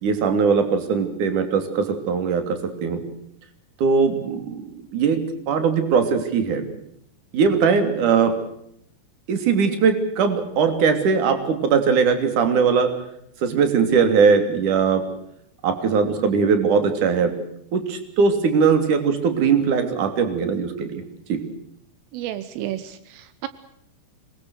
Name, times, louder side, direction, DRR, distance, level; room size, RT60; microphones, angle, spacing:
voice 1, 0.0-3.0 3.8-5.2 5.5-6.6 7.3-8.4 9.3-12.9 13.4-15.1 15.6-17.3 17.7-21.0 21.3-21.4, right 5 dB, 45° right, 8 dB, 4.0 m, -20 dB
voice 2, 22.1-23.5, right 13 dB, 80° right, 13 dB, 3.6 m, -31 dB
26.0 x 22.5 x 6.4 m, 0.72 s
omnidirectional pair, 5.8 m